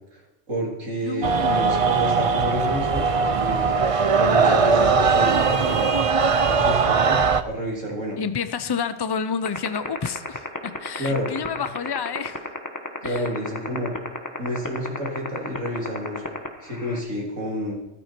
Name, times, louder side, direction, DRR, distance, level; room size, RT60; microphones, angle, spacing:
voice 1, 0.5-3.7 4.2-5.9 6.4-8.2 11.0-11.5 13.0-13.9 14.4-16.2 16.6-17.7, equal, 80° right, -1 dB, 3.5 m, -29 dB
voice 2, 1.0-1.7 4.4-4.7 8.2-12.4 13.0-13.3, left 6 dB, 35° left, 12 dB, 0.4 m, -30 dB
sound 1, 1.2-7.4, right 5 dB, 40° right, 0.5 m, -20 dB
sound 2, 9.5-17.0, left 2 dB, 15° left, 1.3 m, -29 dB
15.0 x 13.0 x 4.5 m, 1.0 s
omnidirectional pair, 1.3 m